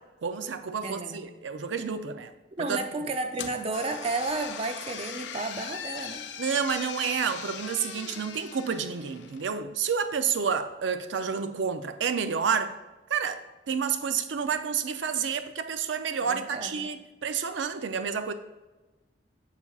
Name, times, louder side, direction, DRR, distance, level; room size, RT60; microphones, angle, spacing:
voice 1, 0.2-2.3 2.6-3.1 6.4-12.7 13.1-18.3, right 6 dB, 85° right, 0.5 m, -30 dB
voice 2, 0.8-1.3 2.6-6.2 16.3-16.9, right 3 dB, 35° right, 0.4 m, -32 dB
sound 1, 3.3-9.5, left 8 dB, 70° left, 0.4 m, -40 dB
7.1 x 6.7 x 2.4 m
head